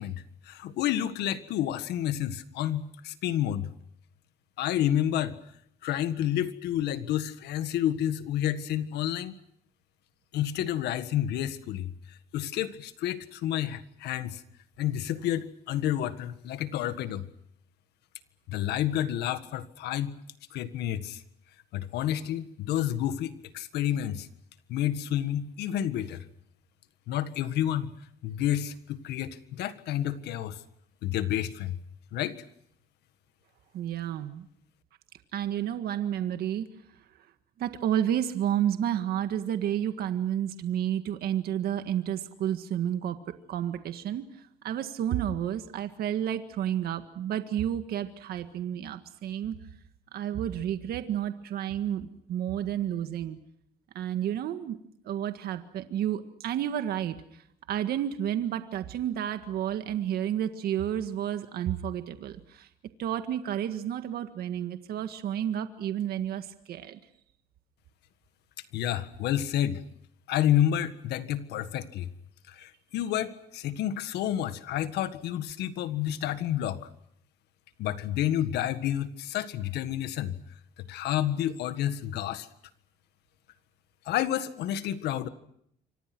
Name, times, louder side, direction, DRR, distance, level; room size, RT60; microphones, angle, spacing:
voice 1, 0.0-3.7 4.6-5.3 5.8-9.4 10.3-14.4 14.8-17.2 18.5-20.1 20.5-21.2 21.7-24.3 24.7-26.3 27.1-27.9 28.2-30.6 31.0-31.8 32.1-32.4 68.7-69.8 70.3-72.1 72.5-76.9 77.8-80.4 80.9-82.5 84.1-85.3, left 11 dB, 80° left, 12 dB, 1.7 m, -30 dB
voice 2, 33.7-34.5 35.3-36.7 37.6-43.2 43.5-49.6 50.1-53.4 54.0-54.8 55.1-62.7 63.0-67.0, right 10 dB, 65° right, 9 dB, 1.7 m, -31 dB
28.0 x 25.0 x 6.1 m, 0.71 s
cardioid pair, 110°, 17 cm